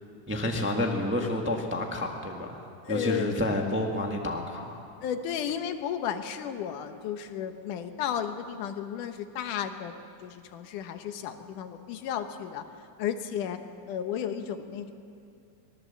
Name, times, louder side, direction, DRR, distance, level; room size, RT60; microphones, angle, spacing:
voice 1, 0.3-4.8, left 1 dB, 5° right, 1 dB, 0.9 m, -30 dB
voice 2, 2.9-3.3 5.0-10.0 10.2-12.6 13.0-13.6 13.9-14.9, left 8 dB, 85° left, 8 dB, 2.6 m, -33 dB
23.0 x 18.5 x 7.4 m, 2.5 s
omnidirectional pair, 3.6 m